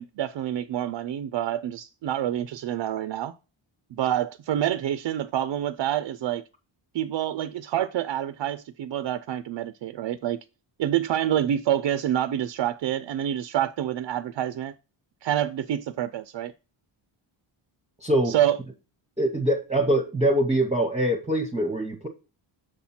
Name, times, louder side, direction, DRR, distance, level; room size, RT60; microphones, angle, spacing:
voice 1, 0.0-3.3 3.9-6.4 6.9-10.4 10.8-14.7 15.2-16.5 18.2-18.6, right 11 dB, 60° right, 0.5 m, -27 dB
voice 2, 18.0-18.3 19.2-22.1, right 1 dB, 15° right, 0.8 m, -23 dB
6.7 x 4.3 x 5.7 m
wide cardioid pair, 135°, 49 cm